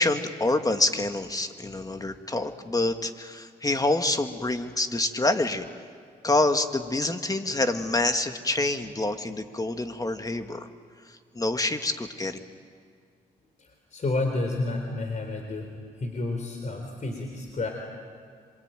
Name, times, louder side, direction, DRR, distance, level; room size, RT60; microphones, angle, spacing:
voice 1, 0.0-5.7 6.2-10.7 11.3-12.4, left 2 dB, 20° left, 7 dB, 2.1 m, -26 dB
voice 2, 13.6-17.7, left 2 dB, 45° left, 4 dB, 4.1 m, -30 dB
26.5 x 24.0 x 9.2 m, 2.1 s
supercardioid pair, 60°, 17 cm